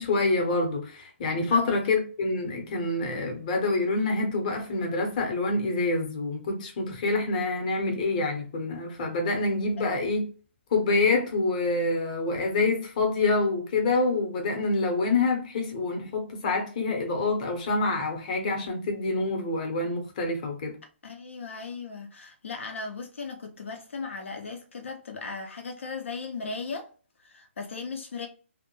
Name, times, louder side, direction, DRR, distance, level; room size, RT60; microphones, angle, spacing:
voice 1, 0.0-10.3 10.7-20.8, left 3 dB, 35° left, 0.7 m, -26 dB
voice 2, 21.0-26.9 27.2-28.3, left 4 dB, 75° left, 0.5 m, -37 dB
2.2 x 2.0 x 2.9 m
hypercardioid pair, 155°, 7 cm